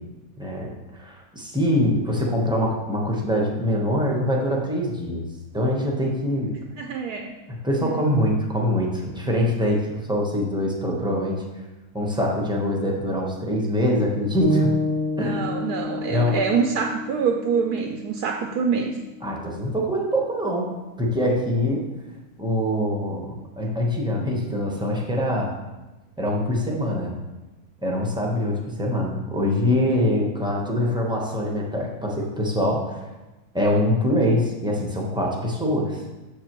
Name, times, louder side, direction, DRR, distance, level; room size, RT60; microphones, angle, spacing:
voice 1, 0.4-5.2 5.5-6.6 7.5-11.4 11.9-14.7 15.2-15.5 16.1-16.4 19.2-21.8 22.4-25.5 26.2-27.1 27.8-33.0 33.5-36.0, left 1 dB, 5° right, -2 dB, 0.7 m, -24 dB
voice 2, 6.8-7.3 7.8-8.0 15.2-19.0, right 6 dB, 75° right, 3 dB, 1.1 m, -25 dB
sound 1, 14.4-18.5, left 1 dB, 75° left, 2.4 m, -28 dB
7.3 x 7.1 x 3.0 m, 1.1 s
omnidirectional pair, 1.7 m